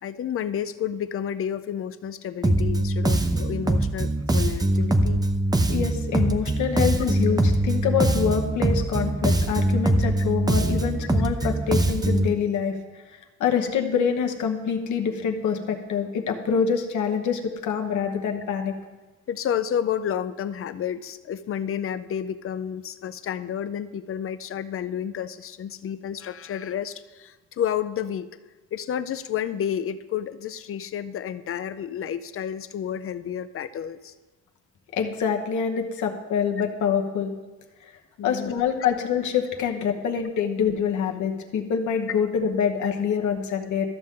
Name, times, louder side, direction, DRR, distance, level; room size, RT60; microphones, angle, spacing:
voice 1, 0.0-5.3 19.3-28.3 28.7-34.1 38.2-38.5, left 9 dB, 45° left, 13 dB, 0.5 m, -30 dB
Bass guitar, 2.4-12.3, right 1 dB, 15° right, 0.6 m, -23 dB
voice 2, 5.7-18.7 34.9-37.3 38.2-43.9, left 7 dB, 75° left, 3 dB, 1.1 m, -26 dB
13.0 x 6.4 x 3.7 m, 1.2 s
cardioid pair, 90°, 30 cm